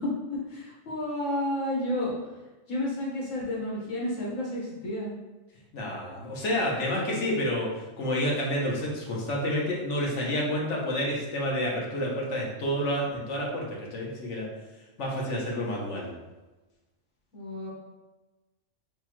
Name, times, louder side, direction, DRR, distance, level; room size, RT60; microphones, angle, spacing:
voice 1, 0.0-2.1 2.7-5.1 17.3-17.7, left 1 dB, 85° left, -4 dB, 1.6 m, -31 dB
voice 2, 5.7-14.5 15.0-16.1, equal, 70° left, -3 dB, 1.3 m, -29 dB
6.5 x 2.3 x 2.9 m, 1.1 s
omnidirectional pair, 1.3 m